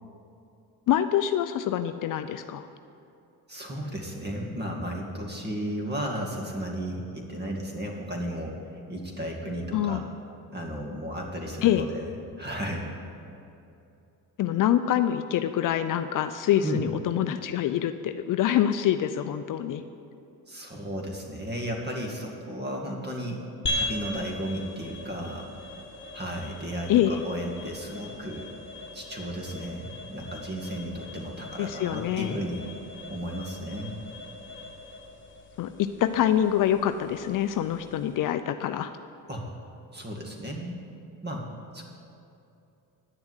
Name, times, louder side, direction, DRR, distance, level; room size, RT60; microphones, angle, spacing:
voice 1, 0.9-2.7 9.7-10.0 11.6-11.9 14.4-19.8 26.9-27.2 31.6-32.3 35.6-38.9, left 11 dB, 50° left, 10 dB, 0.5 m, -25 dB
voice 2, 3.5-8.6 8.9-10.1 10.5-12.1 12.4-12.9 16.6-16.8 20.5-23.4 23.7-25.5 26.1-28.5 28.9-32.6 33.1-34.0 39.3-39.5 39.9-40.8 41.2-41.5 41.7-41.8, equal, 25° right, 0 dB, 2.2 m, -34 dB
sound 1, 23.6-38.3, left 2 dB, 30° left, 1.4 m, -39 dB
10.0 x 7.0 x 8.2 m, 2.7 s
supercardioid pair, 85°, 40 cm